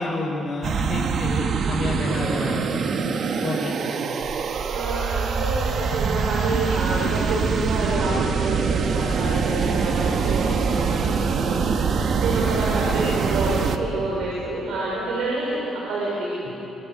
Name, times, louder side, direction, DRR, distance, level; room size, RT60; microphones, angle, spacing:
voice 1, 0.0-2.9 3.4-4.2 12.6-12.7 16.5-16.6, left 2 dB, 40° left, -4 dB, 5.2 m, -30 dB
sound 1, 0.6-13.8, right 5 dB, 60° right, 1.7 m, -24 dB
voice 2, 4.7-16.5, right 2 dB, 80° right, -4 dB, 6.3 m, -28 dB
26.0 x 24.0 x 8.1 m, 3.0 s
cardioid pair, 90°, 0 cm